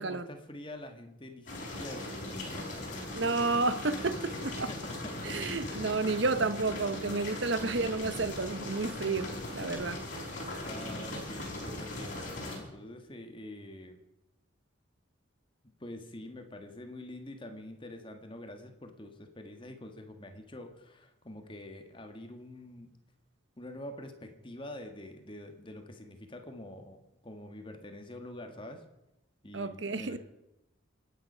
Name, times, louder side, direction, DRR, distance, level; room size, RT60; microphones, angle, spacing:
voice 1, 0.0-3.0 4.5-5.3 5.6-5.9 7.5-7.8 10.6-14.0 15.8-23.0 23.6-27.0 27.2-28.8 29.4-30.2, left 1 dB, 25° left, 1.6 m, -46 dB
sound 1, 1.5-12.6, left 1 dB, 40° left, 4.9 m, -39 dB
voice 2, 3.1-4.7 5.2-10.0 29.5-30.2, right 3 dB, 65° right, 0.9 m, -31 dB
26.0 x 9.5 x 5.6 m
head